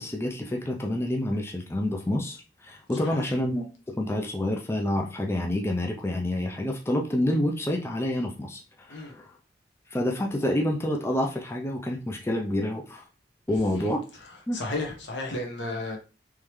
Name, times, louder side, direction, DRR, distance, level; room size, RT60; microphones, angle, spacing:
voice 1, 0.0-8.6 8.9-9.3 9.9-13.0 13.5-14.0 14.5-14.6, left 1 dB, 15° left, 0.4 m, -28 dB
voice 2, 2.9-3.4 8.9-9.1 13.8-13.9 14.2-16.0, left 2 dB, 75° left, 1.1 m, -34 dB
3.7 x 3.1 x 3.1 m
head